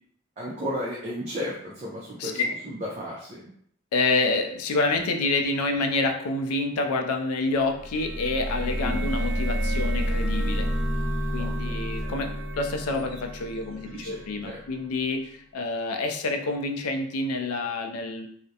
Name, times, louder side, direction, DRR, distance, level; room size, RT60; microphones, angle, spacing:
voice 1, 0.4-2.4 2.6-3.5 8.8-9.0 11.4-11.9 13.9-14.6, equal, 30° right, -4 dB, 0.4 m, -34 dB
voice 2, 2.2-2.5 3.9-10.7 11.3-18.3, left 3 dB, 90° left, 4 dB, 0.4 m, -28 dB
sound 1, 7.7-14.4, equal, ahead, 0.9 m, -29 dB
2.3 x 2.0 x 2.7 m, 0.63 s
head